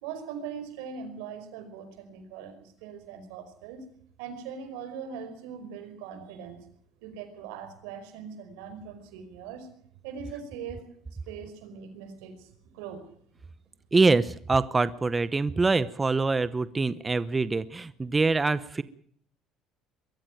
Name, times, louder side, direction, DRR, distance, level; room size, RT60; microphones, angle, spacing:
voice 1, 0.0-3.8 4.2-6.6 7.0-9.7 10.0-10.9 11.3-12.5 12.7-13.0, right 7 dB, 90° right, 8 dB, 5.0 m, -41 dB
voice 2, 13.9-18.8, right 3 dB, 20° right, 15 dB, 0.9 m, -24 dB
22.5 x 14.5 x 9.1 m, 0.63 s
supercardioid pair, 100°, 0 cm